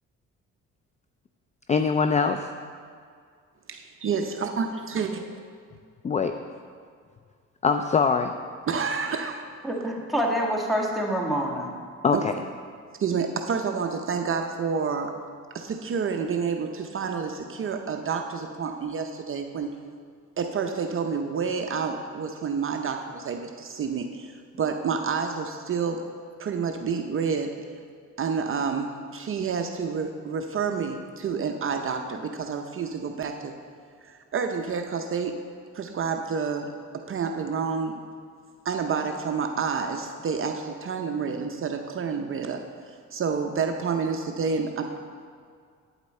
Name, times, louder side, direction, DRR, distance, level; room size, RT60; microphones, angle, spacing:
voice 1, 1.7-2.5 6.0-6.3 7.6-8.3 12.0-12.3, left 5 dB, 25° left, 7 dB, 0.3 m, -22 dB
voice 2, 3.7-5.2 8.7-9.6 12.1-12.2 13.0-15.2 15.5-19.7 20.4-26.0 26.4-27.5 28.2-33.5 34.0-35.4 35.7-38.0 38.6-42.6 42.9-45.0, right 5 dB, 45° right, 4 dB, 0.6 m, -29 dB
voice 3, 9.6-11.7, equal, ahead, -3 dB, 1.6 m, -26 dB
8.8 x 8.1 x 4.3 m, 2.2 s
cardioid pair, 90°, 30 cm